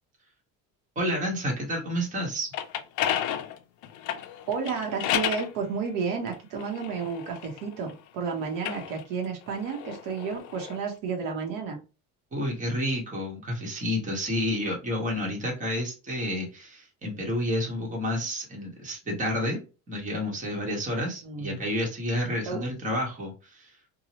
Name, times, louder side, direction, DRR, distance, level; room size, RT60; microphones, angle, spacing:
voice 1, 0.9-2.5 12.3-19.6 19.9-23.7, left 1 dB, 20° right, -1 dB, 1.1 m, -30 dB
sound 1, 2.3-5.5 6.3-8.0 8.5-10.8, left 10 dB, 60° left, 0.5 m, -32 dB
voice 2, 4.5-11.8 21.2-21.6 22.4-22.6, right 5 dB, 70° right, 1 dB, 1.0 m, -31 dB
2.8 x 2.3 x 2.9 m, 0.32 s
cardioid pair, 145°, 35 cm